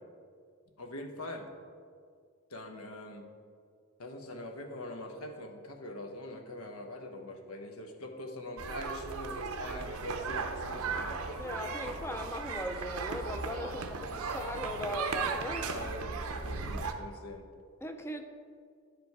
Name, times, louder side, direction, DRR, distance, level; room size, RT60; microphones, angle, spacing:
voice 1, 0.8-1.5 2.5-3.2 4.0-11.3 13.6-13.8 15.4-17.5, left 1 dB, 80° left, 4 dB, 1.0 m, -43 dB
sound 1, 8.6-16.9, right 4 dB, 80° right, 0.7 m, -36 dB
voice 2, 11.4-15.6 17.8-18.2, left 1 dB, 10° left, 7 dB, 0.5 m, -38 dB
10.5 x 5.1 x 4.7 m, 2.1 s
head